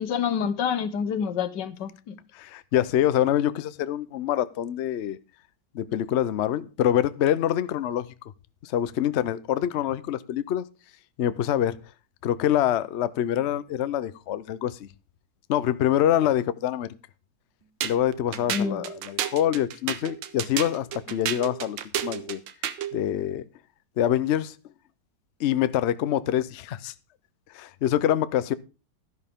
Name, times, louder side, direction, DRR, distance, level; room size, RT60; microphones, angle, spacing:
voice 1, 0.0-2.2 18.5-18.8, left 7 dB, 70° left, 1.5 m, -27 dB
voice 2, 2.3-5.2 5.7-8.1 8.6-10.7 11.2-11.8 12.2-14.9 15.5-16.9 17.8-22.4 22.9-23.4 24.0-24.6 25.4-26.9 27.5-28.5, left 11 dB, 85° left, 0.6 m, -25 dB
sound 1, 17.8-23.0, right 10 dB, 85° right, 1.6 m, -32 dB
12.5 x 11.0 x 3.6 m
omnidirectional pair, 2.0 m